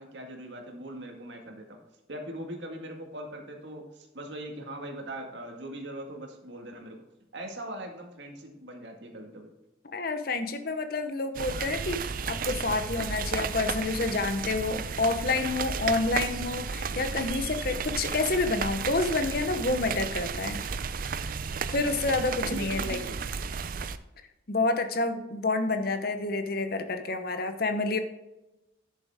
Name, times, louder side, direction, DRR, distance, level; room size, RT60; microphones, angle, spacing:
voice 1, 0.0-1.8 2.1-7.0 7.3-9.5 22.5-23.2, right 1 dB, 65° right, 2 dB, 2.0 m, -40 dB
voice 2, 9.9-20.6 21.7-23.0 24.5-28.0, left 3 dB, 50° left, 9 dB, 0.9 m, -28 dB
sound 1, 11.3-24.0, right 5 dB, 45° right, 0.5 m, -33 dB
11.0 x 7.2 x 3.6 m, 0.99 s
head